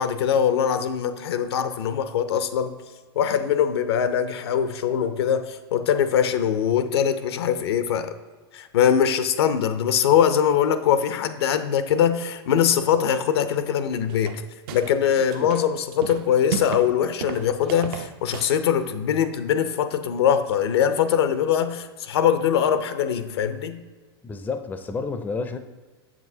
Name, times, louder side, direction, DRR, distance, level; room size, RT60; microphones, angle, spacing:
voice 1, 0.0-2.7 3.2-8.1 8.5-14.4 14.7-23.8, left 8 dB, 80° left, 11 dB, 0.5 m, -22 dB
sound 1, 14.1-15.0 15.3-16.9 17.2-18.6, right 8 dB, 60° right, 0.5 m, -33 dB
voice 2, 24.2-25.6, left 4 dB, 15° left, 9 dB, 0.4 m, -30 dB
7.0 x 6.2 x 2.7 m, 1.3 s
hypercardioid pair, 115°, 13 cm